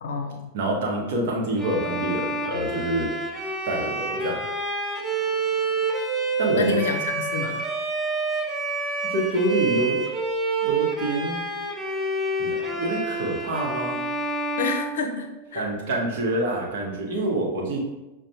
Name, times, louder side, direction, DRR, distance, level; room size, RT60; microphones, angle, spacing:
voice 1, 0.0-0.5 6.5-7.6 14.6-15.7, left 4 dB, 60° left, 4 dB, 0.5 m, -28 dB
voice 2, 0.5-3.1 3.6-4.4 6.4-6.8 9.1-10.0 10.6-11.4 12.4-14.0 15.5-17.8, right 1 dB, 55° right, -1 dB, 0.9 m, -26 dB
Bowed string instrument, 1.6-15.7, right 3 dB, 10° right, 0.6 m, -28 dB
6.0 x 2.2 x 2.8 m, 1.0 s
figure-of-eight pair, 90°, 0 cm